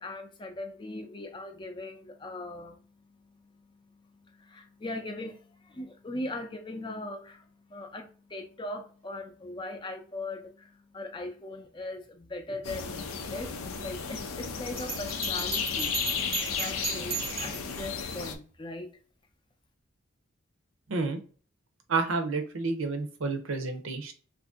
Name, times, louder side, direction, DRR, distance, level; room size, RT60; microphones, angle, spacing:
voice 1, 0.0-2.8 3.6-3.7 4.3-13.5 13.8-15.9 16.6-18.9, left 2 dB, 20° left, 0.4 m, -39 dB
sound 1, 12.6-18.4, left 6 dB, 80° left, 0.5 m, -34 dB
Bell, 14.8-17.7, right 5 dB, 30° right, 0.6 m, -35 dB
voice 2, 20.9-21.2 21.9-24.1, right 3 dB, 75° right, 0.6 m, -30 dB
2.8 x 2.6 x 3.5 m
head